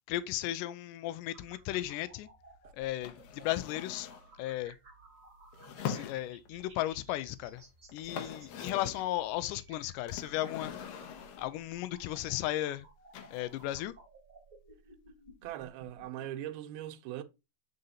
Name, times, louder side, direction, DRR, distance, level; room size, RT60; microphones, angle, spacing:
voice 1, 0.1-2.3 2.7-4.1 4.4-4.7 5.9-7.6 7.9-11.1 11.4-12.9 13.3-14.0, left 14 dB, 90° left, 1.9 m, -35 dB
sound 1, 1.3-16.3, right 2 dB, 30° right, 1.8 m, -57 dB
sound 2, 3.0-4.3 5.5-6.6 7.6-7.7 7.9-9.1 10.1-11.6 13.1-13.8, left 8 dB, 70° left, 1.8 m, -42 dB
voice 2, 15.4-17.2, right 12 dB, 85° right, 2.7 m, -40 dB
7.8 x 5.1 x 2.7 m
omnidirectional pair, 4.3 m